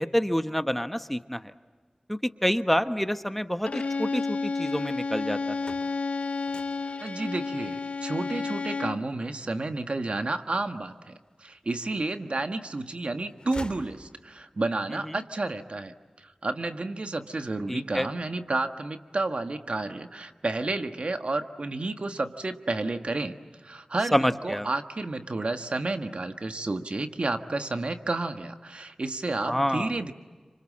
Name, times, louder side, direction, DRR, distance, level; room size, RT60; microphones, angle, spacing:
voice 1, 0.0-1.5 2.1-5.6 14.9-15.2 17.7-18.1 24.1-24.7 29.4-30.0, equal, 5° left, 10 dB, 1.1 m, -28 dB
Bowed string instrument, 3.7-9.1, left 4 dB, 85° left, 0.8 m, -31 dB
sound 1, 5.4-11.3 11.8-12.7 13.0-14.6, left 2 dB, 45° left, 3.3 m, -48 dB
voice 2, 7.0-11.1 11.4-15.9 16.2-23.4 23.6-30.1, right 2 dB, 65° right, 7 dB, 1.6 m, -31 dB
29.5 x 26.5 x 7.5 m, 1.4 s
wide cardioid pair, 45°, 2 cm